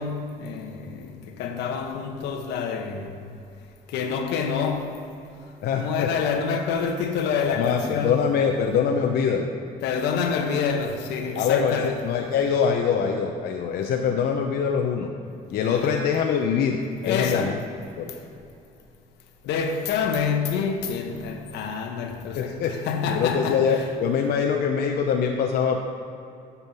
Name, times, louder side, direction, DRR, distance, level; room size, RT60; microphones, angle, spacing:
voice 1, 0.0-3.2 3.9-5.1 5.7-8.2 9.8-11.9 15.7-15.9 17.0-17.6 18.1-18.2 19.4-23.6, left 6 dB, 85° left, 1.1 m, -27 dB
voice 2, 5.6-6.1 7.5-9.5 11.4-15.1 15.5-17.6 18.0-18.1 22.3-22.7 23.1-25.8, left 6 dB, 70° left, 0.7 m, -24 dB
8.2 x 5.6 x 7.0 m
cardioid pair, 110°, 17 cm